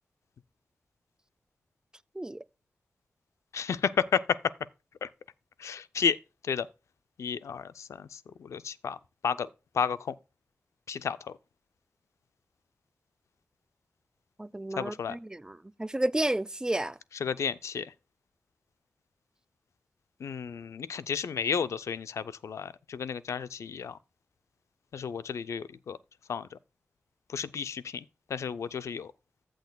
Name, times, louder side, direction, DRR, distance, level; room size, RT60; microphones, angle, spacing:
voice 1, 3.5-4.2 5.0-5.1 5.6-6.2 6.5-6.7 7.2-7.6 8.4-9.0 9.2-9.5 9.8-10.0 10.9-11.2 14.8-15.2 17.2-17.9 20.2-24.0 24.9-26.0 26.3-26.4 27.3-28.0 28.3-29.1, left 7 dB, 85° left, 0.4 m, -31 dB
voice 2, 14.4-17.0, right 1 dB, 15° right, 0.5 m, -31 dB
14.5 x 6.3 x 2.3 m
cardioid pair, 45°, 5 cm